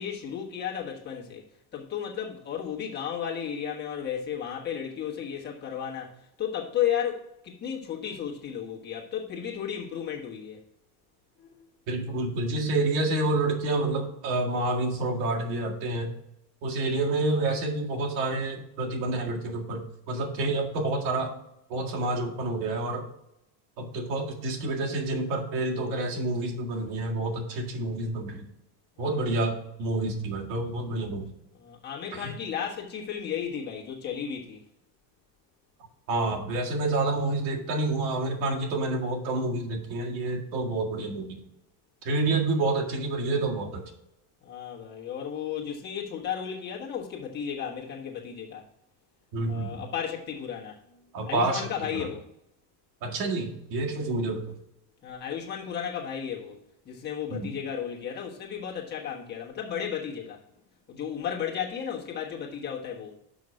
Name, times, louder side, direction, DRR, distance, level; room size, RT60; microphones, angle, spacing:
voice 1, 0.0-1.4 1.7-10.6 11.4-11.6 29.0-29.3 31.5-34.6 44.4-48.6 49.4-50.8 51.2-52.3 55.0-56.6 56.8-60.4 60.9-63.2, left 8 dB, 20° left, 1.3 m, -34 dB
voice 2, 11.9-16.1 16.6-19.8 20.1-21.3 21.7-23.0 23.8-28.5 29.0-31.2 32.1-32.3 36.1-41.4 42.0-43.8 49.3-49.8 51.1-51.7 51.9-52.1 53.0-54.4 57.3-57.5, right 2 dB, 85° right, 2.1 m, -28 dB
6.2 x 5.7 x 6.4 m
cardioid pair, 175°, 49 cm